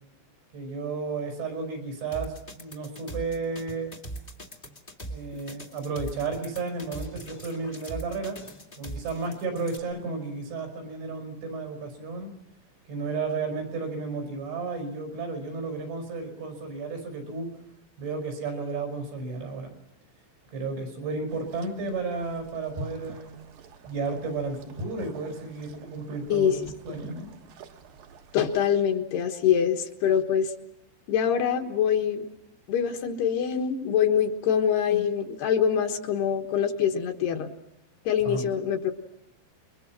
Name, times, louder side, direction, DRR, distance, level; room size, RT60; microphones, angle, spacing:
voice 1, 0.5-3.9 5.1-8.4 8.8-12.3 12.9-17.5 18.0-19.7 20.5-23.4 23.9-27.3 38.3-38.5, right 4 dB, 85° right, 4 dB, 7.5 m, -33 dB
sound 1, 2.1-9.8, right 1 dB, 30° left, 0.9 m, -40 dB
sound 2, 21.3-28.6, right 2 dB, 65° right, 2.6 m, -45 dB
voice 2, 26.3-26.7 28.3-30.5 31.1-32.3 32.7-37.5 38.0-39.2, left 8 dB, 70° left, 4 dB, 3.2 m, -24 dB
28.5 x 23.0 x 6.0 m, 0.85 s
omnidirectional pair, 5.2 m